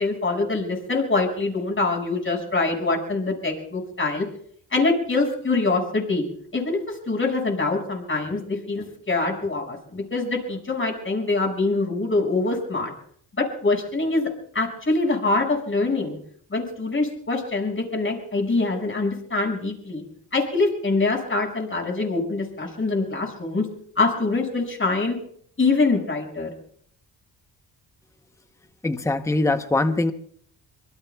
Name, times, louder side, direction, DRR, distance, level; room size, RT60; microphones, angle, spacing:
voice 1, 0.0-4.2 4.7-6.2 6.5-12.9 13.4-14.3 14.5-16.2 16.5-20.0 20.3-23.7 24.0-25.2 25.6-26.5, left 3 dB, 30° left, 1 dB, 6.1 m, -24 dB
voice 2, 28.8-30.1, left 2 dB, 5° left, 9 dB, 0.8 m, -22 dB
26.0 x 24.0 x 2.3 m, 0.62 s
cardioid pair, 85°, 39 cm